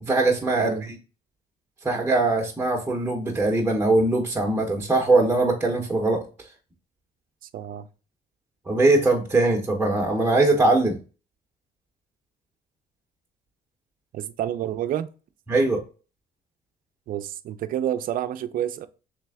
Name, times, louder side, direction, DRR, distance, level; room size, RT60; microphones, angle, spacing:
voice 1, 0.0-1.0 1.8-6.2 8.7-11.0 15.5-15.8, right 2 dB, 10° right, 0.8 m, -21 dB
voice 2, 0.6-0.9 7.5-7.9 14.1-15.1 17.1-18.9, right 11 dB, 55° right, 0.4 m, -29 dB
3.3 x 3.2 x 3.4 m
cardioid pair, 110°, 17 cm